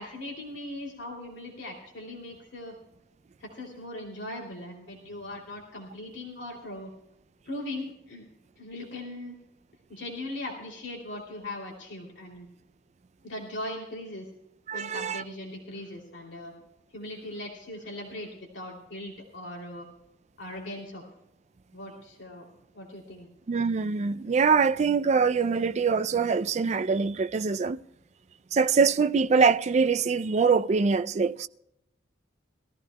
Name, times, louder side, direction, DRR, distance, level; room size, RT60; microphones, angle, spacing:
voice 1, 0.0-2.7 3.4-6.9 7.4-8.3 8.6-9.3 9.9-12.5 13.2-14.3 14.7-16.5 16.9-19.9 20.4-21.0 21.7-22.5 22.7-23.3, left 1 dB, 70° left, 2.9 m, -39 dB
voice 2, 14.7-15.2 23.5-27.8 28.5-31.5, right 5 dB, 35° right, 0.4 m, -24 dB
22.0 x 14.5 x 2.2 m
head